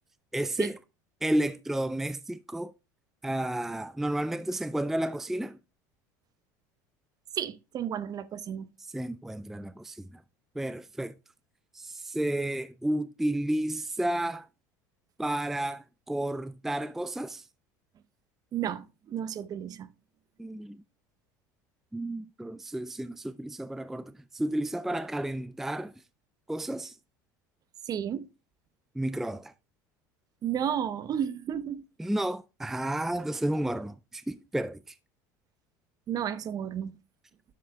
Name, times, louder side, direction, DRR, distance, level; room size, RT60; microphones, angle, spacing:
voice 1, 0.3-0.8 1.2-2.7 3.2-5.6 8.8-10.2 10.6-11.1 11.7-14.5 15.2-17.5 20.4-20.8 21.9-25.9 26.5-27.0 29.0-29.5 32.0-35.0, right 1 dB, 5° right, 0.4 m, -32 dB
voice 2, 7.4-8.7 18.5-19.9 27.9-28.3 30.4-31.8 36.1-36.9, right 9 dB, 45° right, 0.8 m, -32 dB
10.0 x 7.5 x 2.2 m
hypercardioid pair, 85°, 9 cm